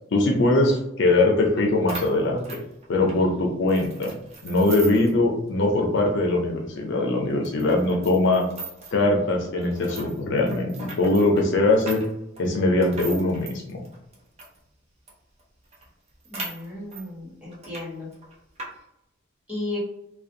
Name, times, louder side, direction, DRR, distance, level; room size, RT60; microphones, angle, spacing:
voice 1, 0.1-2.6 2.9-4.1 4.4-8.4 8.9-12.0 12.4-13.8, left 2 dB, 60° left, 1 dB, 0.4 m, -21 dB
sound 1, 1.6-1.7 1.9-3.2 3.7-5.2 5.5-5.6 6.0-6.1 6.7-6.8 7.4-9.0 9.6-14.6 15.1-15.2 15.4-15.5 15.7-17.1 17.5-17.9 18.1-18.7, right 3 dB, 30° right, 0.5 m, -39 dB
voice 2, 16.3-18.1 19.5-19.8, left 2 dB, 5° right, -8 dB, 1.1 m, -34 dB
2.4 x 2.2 x 2.6 m, 0.85 s
head